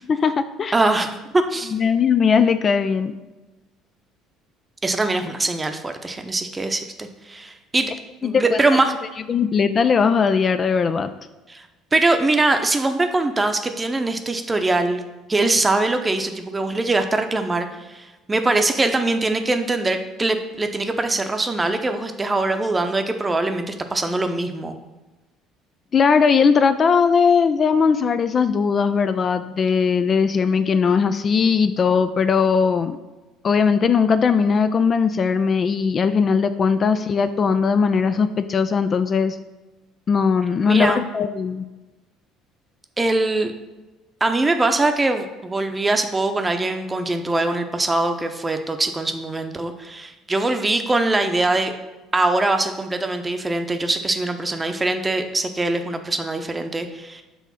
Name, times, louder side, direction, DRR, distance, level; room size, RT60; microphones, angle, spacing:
voice 1, 0.1-0.7 1.7-3.1 8.2-8.8 9.3-11.1 25.9-33.0 33.4-39.4 40.1-41.6, left 5 dB, 40° left, 10 dB, 0.4 m, -19 dB
voice 2, 0.7-1.7 4.8-7.9 8.2-8.9 11.5-11.7 11.9-15.0 15.3-24.8 36.8-36.9 40.7-41.0 43.0-43.5 44.2-51.7 52.1-57.2, right 2 dB, 20° right, 7 dB, 0.7 m, -22 dB
6.1 x 3.5 x 5.6 m, 1.1 s
figure-of-eight pair, 60°, 0 cm